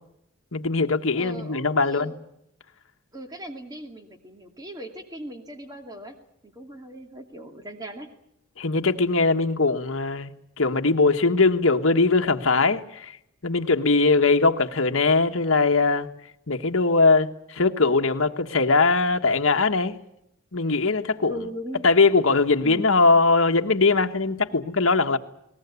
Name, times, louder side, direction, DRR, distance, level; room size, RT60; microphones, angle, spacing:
voice 1, 0.5-2.1 8.6-13.1 13.4-16.1 16.5-20.0 20.5-21.3 21.8-25.2, left 3 dB, 65° left, 6 dB, 1.4 m, -21 dB
voice 2, 1.1-2.1 3.1-6.1 6.4-8.1 21.3-21.8 22.6-23.1, right 1 dB, 20° right, 5 dB, 2.4 m, -39 dB
22.0 x 19.5 x 8.2 m, 0.80 s
head